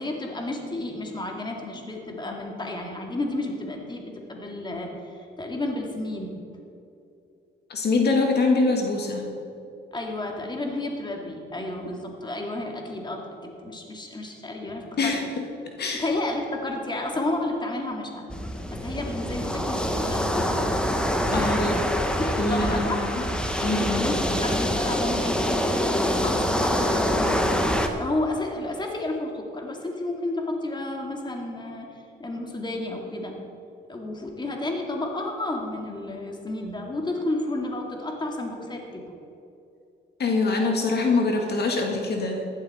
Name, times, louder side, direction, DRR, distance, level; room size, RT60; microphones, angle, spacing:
voice 1, 0.0-6.4 9.9-15.2 16.0-18.3 18.7-20.5 21.3-21.8 22.2-23.1 23.7-31.9 32.2-33.4 33.9-39.0, left 2 dB, 20° left, 1 dB, 2.2 m, -31 dB
voice 2, 7.7-9.4 15.0-15.2 15.8-16.1 21.3-21.8 22.4-23.2 23.6-24.1 40.2-42.4, left 3 dB, 55° left, 2 dB, 1.9 m, -24 dB
sound 1, 18.3-27.9, equal, 5° left, 1.2 m, -25 dB
14.5 x 12.0 x 4.3 m, 2.7 s
cardioid pair, 90°, 20 cm